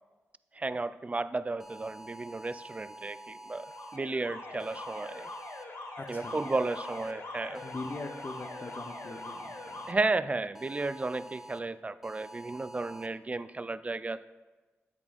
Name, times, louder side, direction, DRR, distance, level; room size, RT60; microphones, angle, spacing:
voice 1, 0.6-3.7 3.9-5.3 6.1-7.6 9.9-14.3, right 3 dB, 25° right, 15 dB, 0.3 m, -33 dB
sound 1, 1.6-4.0 4.6-5.6 6.1-7.1 7.5-9.9 10.5-11.6 12.0-13.1, right 1 dB, 5° right, 0.7 m, -48 dB
Alarm, 3.5-10.0, left 2 dB, 65° left, 1.3 m, -43 dB
voice 2, 6.0-6.4 7.6-9.9, left 3 dB, 45° left, 5 dB, 0.8 m, -42 dB
8.9 x 7.9 x 2.4 m, 1.2 s
cardioid pair, 45°, 5 cm